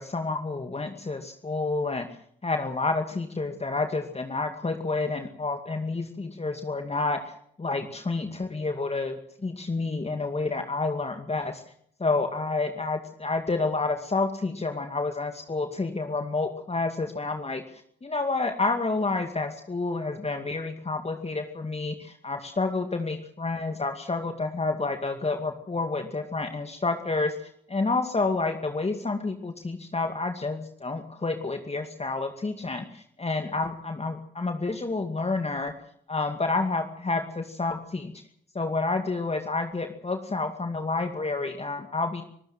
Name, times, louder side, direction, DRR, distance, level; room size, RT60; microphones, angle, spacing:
voice 1, 0.0-2.1 2.4-11.6 12.0-35.7 36.1-38.1 38.5-42.2, left 3 dB, 30° left, 6 dB, 2.4 m, -29 dB
25.5 x 14.5 x 7.7 m, 0.67 s
hypercardioid pair, 40°, 21 cm